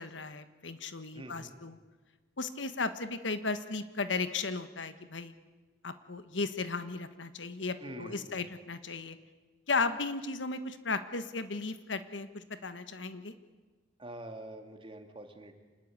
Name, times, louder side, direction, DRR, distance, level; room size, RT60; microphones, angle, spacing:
voice 1, 0.0-1.8 2.4-5.3 5.8-9.2 9.7-13.3, left 4 dB, 75° left, 11 dB, 1.4 m, -35 dB
voice 2, 1.1-1.5 7.8-8.5 14.0-15.6, right 1 dB, 30° right, 5 dB, 2.5 m, -45 dB
26.5 x 20.0 x 8.8 m, 1.3 s
head